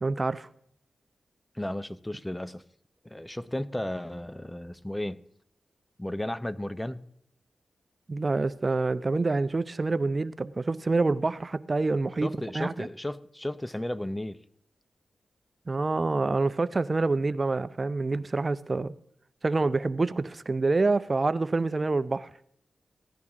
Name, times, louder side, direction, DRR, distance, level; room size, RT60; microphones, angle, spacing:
voice 1, 0.0-0.5 8.1-12.9 15.7-18.9 19.4-22.3, right 3 dB, 45° right, 0.4 m, -27 dB
voice 2, 1.6-2.6 3.0-5.2 6.0-7.0 12.2-14.4, left 1 dB, 15° left, 0.6 m, -34 dB
16.0 x 10.5 x 3.7 m
supercardioid pair, 40°, 0 cm